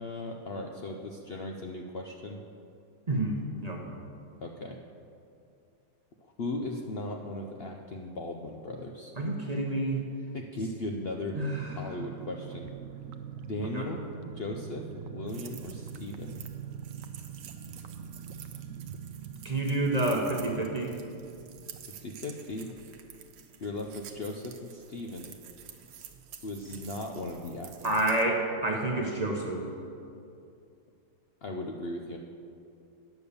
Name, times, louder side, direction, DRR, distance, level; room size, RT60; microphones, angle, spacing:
voice 1, 0.0-2.4 4.4-4.8 6.2-9.1 10.3-11.4 11.8-12.7 13.4-14.0 14.4-16.4 22.0-22.7 23.6-25.3 26.4-27.9 31.4-32.2, left 2 dB, 65° left, 2 dB, 0.6 m, -37 dB
voice 2, 3.1-3.9 9.2-10.0 11.4-12.0 13.6-13.9 19.4-20.9 27.8-29.7, right 2 dB, 30° right, -1 dB, 0.8 m, -29 dB
sound 1, 11.2-23.5 23.8-23.9 24.2-24.5, right 7 dB, 70° right, 0.8 m, -44 dB
sound 2, 15.3-28.2, right 8 dB, 85° right, 1.4 m, -50 dB
9.4 x 7.0 x 6.8 m, 2.5 s
omnidirectional pair, 1.8 m